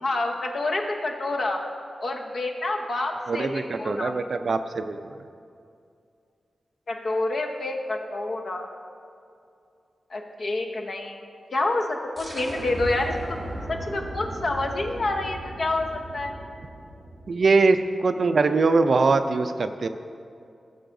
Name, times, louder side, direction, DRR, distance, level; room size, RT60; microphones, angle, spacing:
voice 1, 0.0-1.6 2.0-4.1 6.9-8.7 10.1-11.2 11.5-13.4 13.7-16.3, left 2 dB, 55° left, 2 dB, 0.9 m, -28 dB
voice 2, 3.3-5.1 17.3-19.9, right 3 dB, 50° right, 9 dB, 0.4 m, -22 dB
sound 1, 12.2-17.7, right 1 dB, 25° right, 1.5 m, -37 dB
17.0 x 6.9 x 2.6 m, 2.4 s
wide cardioid pair, 160°, 0 cm